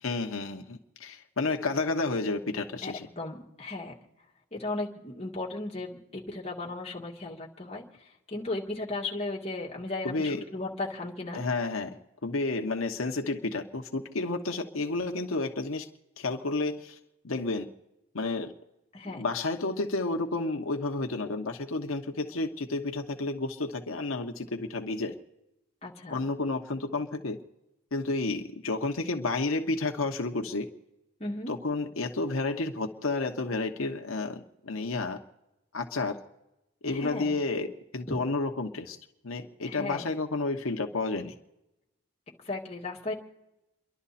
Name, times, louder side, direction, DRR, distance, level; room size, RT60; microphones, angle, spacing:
voice 1, 0.0-3.1 10.0-10.4 11.3-15.9 16.2-17.0 17.2-17.7 18.1-18.5 19.1-25.2 26.1-27.4 27.9-30.7 31.5-35.2 35.7-36.2 36.8-39.0 39.2-41.3, left 3 dB, 85° left, 3 dB, 1.1 m, -31 dB
voice 2, 2.8-3.9 4.5-11.4 18.9-19.2 25.8-26.2 31.2-31.5 36.9-37.4 38.1-38.2 39.7-40.1 42.4-43.1, left 2 dB, 30° left, -2 dB, 2.1 m, -36 dB
29.0 x 11.5 x 4.2 m, 0.94 s
head